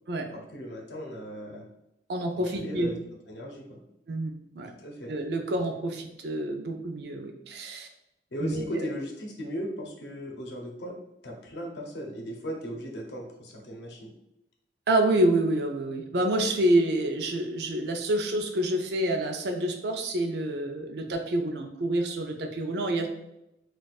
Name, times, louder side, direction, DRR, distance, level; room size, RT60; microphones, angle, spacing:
voice 1, 0.3-1.7 2.3-3.0 3.3-3.8 4.8-5.1 8.3-11.0 11.2-14.1, equal, 80° left, 0 dB, 0.7 m, -37 dB
voice 2, 2.1-2.9 4.1-4.7 5.1-7.9 8.4-8.9 14.9-23.1, right 1 dB, 70° right, 4 dB, 0.5 m, -27 dB
2.4 x 2.4 x 4.0 m, 0.86 s
head